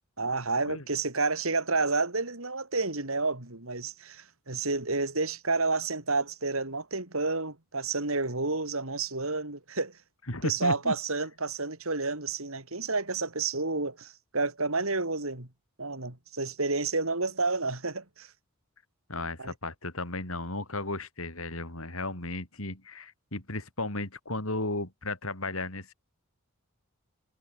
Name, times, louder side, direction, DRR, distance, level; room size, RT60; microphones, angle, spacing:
voice 1, 0.2-10.0 10.4-15.5 15.8-18.3 19.4-19.5, right 3 dB, 70° right, 4.0 m, -30 dB
voice 2, 10.3-10.9 19.1-25.9, left 2 dB, 70° left, 5.5 m, -34 dB
head